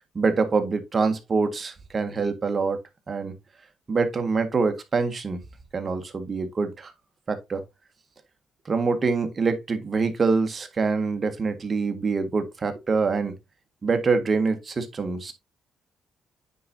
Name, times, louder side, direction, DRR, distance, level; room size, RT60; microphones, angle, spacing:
voice 1, 0.2-2.8 3.1-3.3 3.9-5.4 5.7-6.9 7.3-7.6 8.7-13.3 13.8-15.3, right 4 dB, 35° right, 1.7 m, -25 dB
9.4 x 5.0 x 2.8 m
cardioid pair, 90°, 0 cm